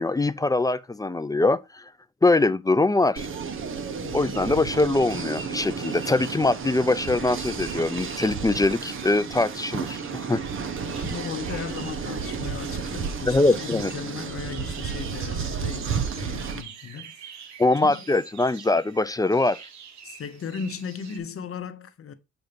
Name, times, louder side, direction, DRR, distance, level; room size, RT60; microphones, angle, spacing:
voice 1, 0.0-1.8 2.2-3.3 4.1-10.4 13.3-13.9 17.6-19.6, left 2 dB, 15° left, 0.3 m, -23 dB
sound 1, 3.2-16.6, right 6 dB, 45° right, 0.9 m, -32 dB
voice 2, 4.0-4.6 10.9-17.5 17.8-18.0 20.0-22.1, left 7 dB, 45° left, 0.9 m, -37 dB
sound 2, 6.9-21.2, right 7 dB, 65° right, 1.2 m, -46 dB
7.9 x 2.7 x 5.1 m
cardioid pair, 90°, 30 cm